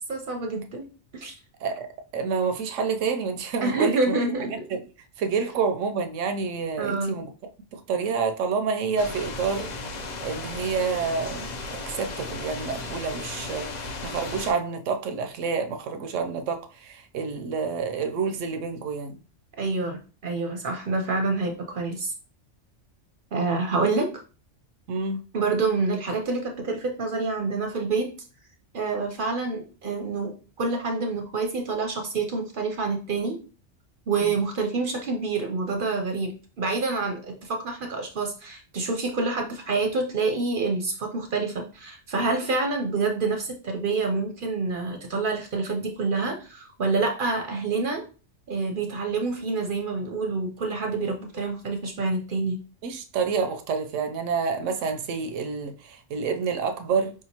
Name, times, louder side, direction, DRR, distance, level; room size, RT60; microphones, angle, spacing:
voice 1, 0.1-0.8 1.1-1.3 3.6-4.7 6.8-7.2 19.6-22.1 23.3-24.1 25.3-28.1 28.7-30.3 30.6-33.4 34.1-48.0 48.5-52.6, right 3 dB, 55° right, 0.7 m, -27 dB
voice 2, 2.1-4.8 5.2-7.3 7.7-9.7 10.0-11.5 11.9-19.2 24.9-25.2 34.2-34.4 52.8-57.1, right 5 dB, 80° right, 0.9 m, -28 dB
sound 1, 9.0-14.5, left 3 dB, 50° left, 0.5 m, -35 dB
4.8 x 2.8 x 2.8 m
omnidirectional pair, 1.3 m